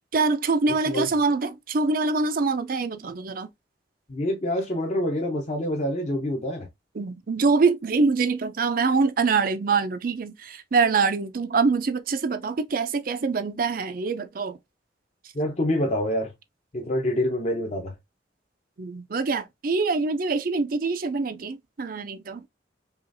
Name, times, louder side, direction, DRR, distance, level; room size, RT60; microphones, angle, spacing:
voice 1, 0.1-3.5 6.9-14.6 18.8-22.5, right 4 dB, 50° right, 0.5 m, -24 dB
voice 2, 4.1-6.7 15.3-16.3 16.7-18.0, left 1 dB, 40° left, 0.8 m, -26 dB
5.5 x 2.4 x 2.6 m
head